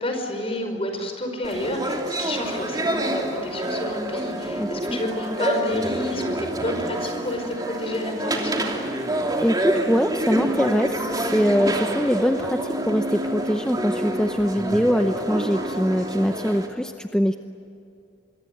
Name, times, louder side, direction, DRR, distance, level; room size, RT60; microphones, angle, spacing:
voice 1, 0.0-8.9, left 1 dB, 35° left, 5 dB, 5.3 m, -30 dB
sound 1, 1.4-16.7, right 1 dB, 20° right, 3.1 m, -28 dB
voice 2, 4.6-5.0 9.4-17.4, equal, 5° left, 6 dB, 0.8 m, -23 dB
26.0 x 23.5 x 9.4 m, 2.5 s
head